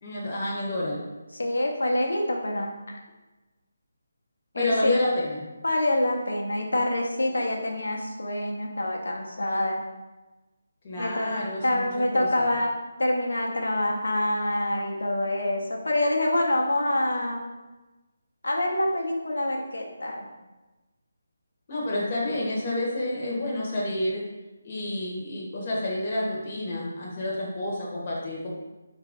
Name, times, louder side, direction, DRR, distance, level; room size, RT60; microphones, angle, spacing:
voice 1, 0.0-1.1 4.5-5.4 10.8-12.5 21.7-24.2 24.6-28.5, left 1 dB, 40° left, -4 dB, 1.0 m, -29 dB
voice 2, 1.3-3.0 4.5-4.9 5.6-9.8 11.0-11.3 11.6-12.7 13.0-17.4 18.4-20.3, left 1 dB, 80° left, 1 dB, 0.8 m, -26 dB
4.4 x 2.5 x 3.5 m, 1.1 s
figure-of-eight pair, 160°, 0 cm